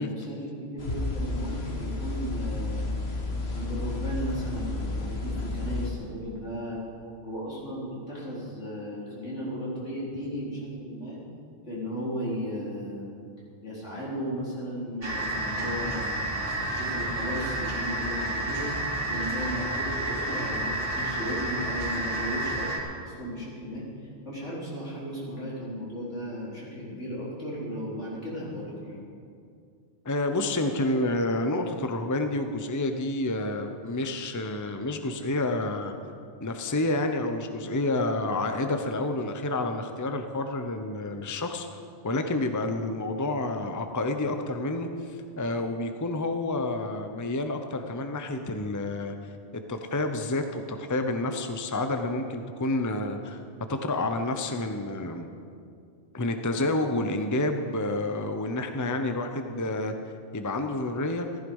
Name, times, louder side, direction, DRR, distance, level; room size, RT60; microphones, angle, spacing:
voice 1, 0.0-2.8 3.5-6.8 7.2-11.2 11.7-13.0 13.6-18.7 19.1-22.7 23.0-29.0, equal, 80° left, -7 dB, 4.7 m, -35 dB
sound 1, 0.8-5.9, left 2 dB, 60° left, 1.7 m, -31 dB
sound 2, 15.0-22.8, right 1 dB, 50° right, 3.3 m, -30 dB
voice 2, 30.0-35.9 36.4-41.7 42.0-49.1 49.5-53.4 53.7-55.3 56.1-59.9 60.3-61.3, left 2 dB, 20° left, 6 dB, 0.7 m, -29 dB
15.0 x 14.5 x 5.5 m, 2.3 s
omnidirectional pair, 1.2 m